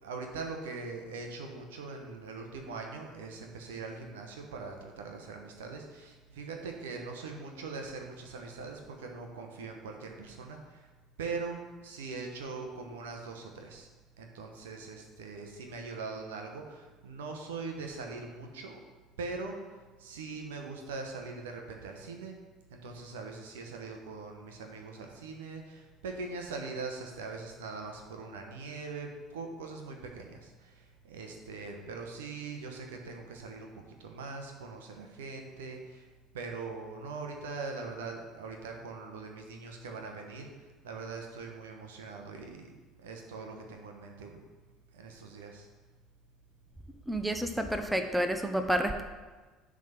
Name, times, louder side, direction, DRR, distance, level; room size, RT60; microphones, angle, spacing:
voice 1, 0.0-10.9 11.2-13.9 14.2-18.8 19.2-22.4 22.7-36.1 36.3-42.7 43.0-44.4 44.9-45.7, right 4 dB, 70° right, 3 dB, 1.1 m, -42 dB
voice 2, 47.1-49.0, right 1 dB, 5° right, 6 dB, 0.8 m, -29 dB
10.5 x 3.8 x 5.8 m, 1.3 s
figure-of-eight pair, 60°, 0 cm